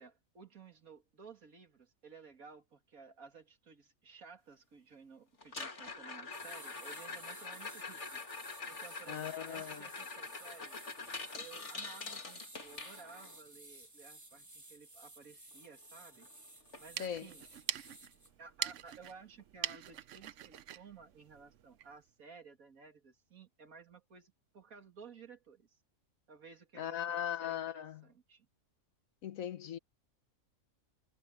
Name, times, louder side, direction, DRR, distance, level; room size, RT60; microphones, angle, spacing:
voice 1, 0.0-8.2 8.7-10.8 11.4-16.3 16.8-17.5 18.4-25.8 26.3-28.5, right 5 dB, 85° right, 2.7 m, -55 dB
sound 1, 5.4-13.4 15.6-15.7 16.0-16.3 16.7-16.8 17.4-17.5 19.4-19.5, left 4 dB, 55° left, 2.9 m, -45 dB
sound 2, 6.3-18.3, right 1 dB, 15° right, 1.4 m, -55 dB
voice 2, 9.1-9.8 17.0-17.3 26.7-28.1 29.2-29.8, left 10 dB, 80° left, 1.4 m, -39 dB
sound 3, 16.7-22.0, right 11 dB, 70° right, 1.0 m, -44 dB
omnidirectional pair, 1.4 m